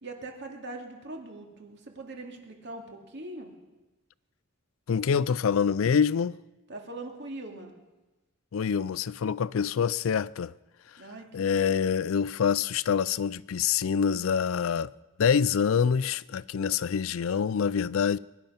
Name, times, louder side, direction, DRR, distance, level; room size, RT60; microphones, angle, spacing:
voice 1, 0.0-3.5 6.7-7.7 11.0-11.8, right 2 dB, 60° right, 2.4 m, -42 dB
voice 2, 4.9-6.4 8.5-10.5 11.3-14.9 15.2-18.2, left 7 dB, 80° left, 0.4 m, -26 dB
22.0 x 10.5 x 5.7 m
head